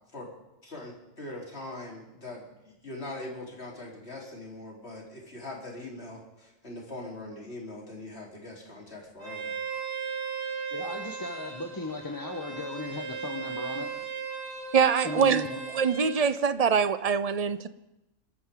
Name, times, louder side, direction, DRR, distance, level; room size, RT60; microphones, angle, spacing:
voice 1, 0.6-9.5, left 2 dB, 50° left, 4.2 m, -42 dB
Bowed string instrument, 9.2-16.1, right 6 dB, 60° right, 7.1 m, -37 dB
voice 2, 10.7-14.0 15.0-15.6, left 3 dB, 15° left, 1.1 m, -36 dB
voice 3, 14.7-17.7, right 6 dB, 40° right, 0.5 m, -24 dB
26.5 x 13.5 x 3.8 m
omnidirectional pair, 1.4 m